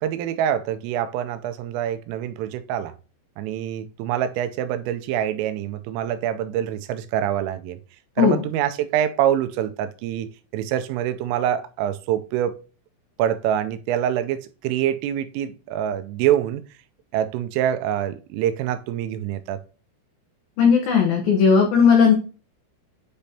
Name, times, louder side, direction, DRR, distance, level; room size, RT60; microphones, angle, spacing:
voice 1, 0.0-2.9 3.4-7.8 8.2-12.6 13.2-16.6 17.1-19.6, right 10 dB, 85° right, 3.1 m, -25 dB
voice 2, 20.6-22.1, left 6 dB, 90° left, 2.0 m, -16 dB
9.0 x 5.1 x 2.8 m
omnidirectional pair, 5.9 m